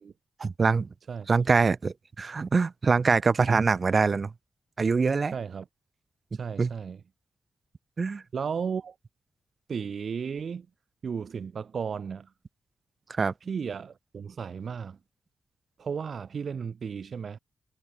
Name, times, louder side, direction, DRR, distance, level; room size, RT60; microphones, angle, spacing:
voice 1, 0.4-0.9 1.3-4.3 4.8-5.3 6.6-6.7 8.0-8.2 13.2-13.3, right 4 dB, 35° right, 3.6 m, -24 dB
voice 2, 5.3-5.7 6.3-7.0 8.3-8.9 9.7-10.7 11.0-12.3 13.5-15.0 15.8-17.4, right 6 dB, 50° right, 2.7 m, -34 dB
wide cardioid pair, 145°, 0 cm